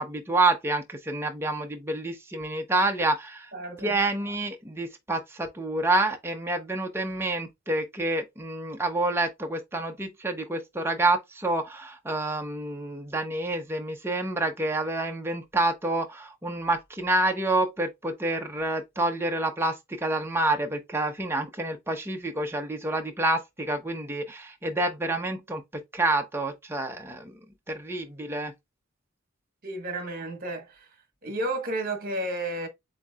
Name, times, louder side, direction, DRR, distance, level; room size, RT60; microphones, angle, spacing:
voice 1, 0.0-3.5 3.8-27.4 27.7-28.5, right 2 dB, 10° right, 0.6 m, -28 dB
voice 2, 3.5-3.9 29.6-30.9 31.2-32.7, right 1 dB, 45° right, 1.2 m, -32 dB
7.6 x 2.7 x 2.3 m
head